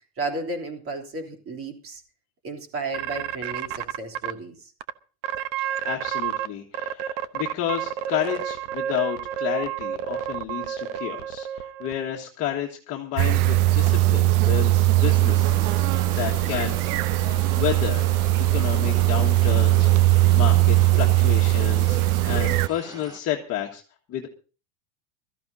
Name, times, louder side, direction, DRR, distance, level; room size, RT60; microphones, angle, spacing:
voice 1, 0.2-2.0 2.4-4.7, right 2 dB, 30° right, 3 dB, 3.3 m, -33 dB
sound 1, 2.9-4.3 4.8-4.9 5.2-6.5 6.7-11.9, right 10 dB, 55° right, 1.1 m, -30 dB
voice 2, 5.6-18.0 18.4-19.9 20.3-23.8 24.1-24.3, left 11 dB, 30° left, 0 dB, 1.7 m, -31 dB
sound 2, 13.2-22.7, right 16 dB, 75° right, 0.7 m, -20 dB
sound 3, 15.0-23.2, right 2 dB, 10° right, 1.0 m, -42 dB
22.0 x 14.0 x 2.8 m, 0.36 s
supercardioid pair, 170°, 44 cm